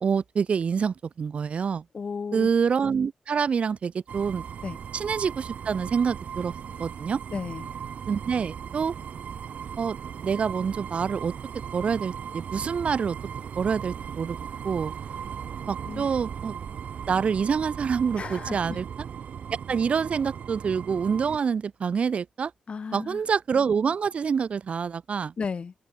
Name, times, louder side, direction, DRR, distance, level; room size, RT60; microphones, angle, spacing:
voice 1, 0.0-1.8 2.3-4.4 4.9-6.5 6.8-7.2 8.1-8.9 9.8-10.0 10.2-11.3 11.7-13.2 13.6-14.4 14.6-14.9 15.7-16.5 17.1-18.9 19.7-22.5 22.9-25.3, right 6 dB, 55° right, 0.6 m, -26 dB
voice 2, 1.9-2.5 4.6-4.8 7.3-7.7 15.9-16.1 18.2-18.8 22.7-23.2 25.4-25.7, left 5 dB, 50° left, 1.4 m, -34 dB
sound 1, 4.1-21.4, right 8 dB, 70° right, 1.5 m, -37 dB
open air
cardioid pair, 90°, 3 cm